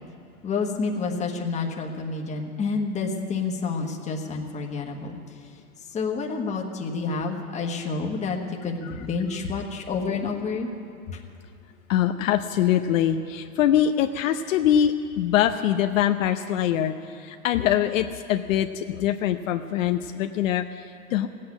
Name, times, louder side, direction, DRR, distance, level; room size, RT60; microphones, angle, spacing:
voice 1, 0.4-5.2 5.9-10.7 11.1-11.2, left 4 dB, 15° left, 1 dB, 1.4 m, -29 dB
voice 2, 11.9-21.3, left 10 dB, 60° left, 7 dB, 0.8 m, -23 dB
16.0 x 8.6 x 9.8 m, 2.7 s
hypercardioid pair, 135°, 43 cm